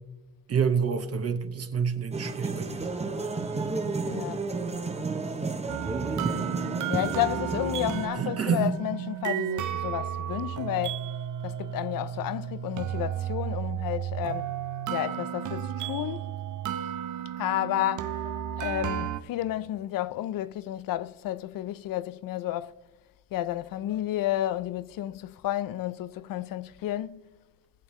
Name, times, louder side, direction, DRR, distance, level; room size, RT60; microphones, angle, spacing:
voice 1, 0.5-2.9 8.1-8.7 18.6-18.7, right 6 dB, 45° right, 0.9 m, -28 dB
sound 1, 2.1-8.1, right 3 dB, 20° right, 0.8 m, -31 dB
voice 2, 4.1-4.4 6.9-11.1 11.4-14.5 14.9-16.2 17.4-22.8 23.3-27.2, left 13 dB, 70° left, 0.5 m, -31 dB
sound 2, 5.7-19.2, right 10 dB, 60° right, 0.6 m, -33 dB
21.0 x 7.1 x 3.1 m
cardioid pair, 125°, 35 cm